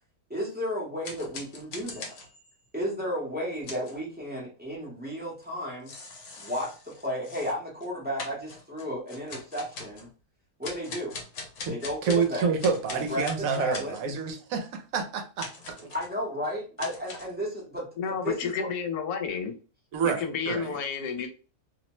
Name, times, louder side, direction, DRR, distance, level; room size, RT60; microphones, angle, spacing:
voice 1, 0.3-2.1 2.7-5.9 6.4-10.1 10.6-11.1 11.7-12.5 13.1-13.3 13.6-13.9 15.9-18.7, equal, 10° right, 0.5 m, -33 dB
sound 1, 1.0-2.7 3.6-4.0 5.4-5.5 5.9-7.9 8.2-10.1 10.6-12.3 12.6-14.1 15.4-16.1 16.8-17.4, left 3 dB, 65° left, 1.1 m, -42 dB
voice 2, 12.0-15.5 15.8-15.9 19.9-20.8, right 5 dB, 70° right, 1.0 m, -28 dB
voice 3, 18.0-19.5 20.0-21.3, left 6 dB, 80° left, 1.1 m, -31 dB
2.7 x 2.1 x 3.0 m
omnidirectional pair, 1.6 m